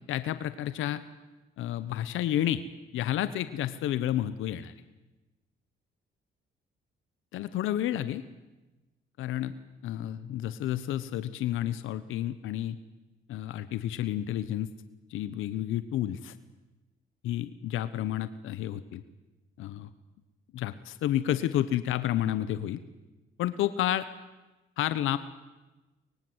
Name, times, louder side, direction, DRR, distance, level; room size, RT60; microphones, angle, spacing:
voice 1, 0.1-1.0 1.6-2.6 2.9-4.7 7.3-8.2 9.2-9.5 9.8-12.8 13.3-14.7 15.1-16.3 17.2-19.0 19.6-19.9 20.5-22.8 23.4-24.1 24.8-25.2, left 12 dB, 85° left, 13 dB, 1.1 m, -30 dB
24.0 x 23.0 x 8.0 m, 1.1 s
cardioid pair, 90°, 20 cm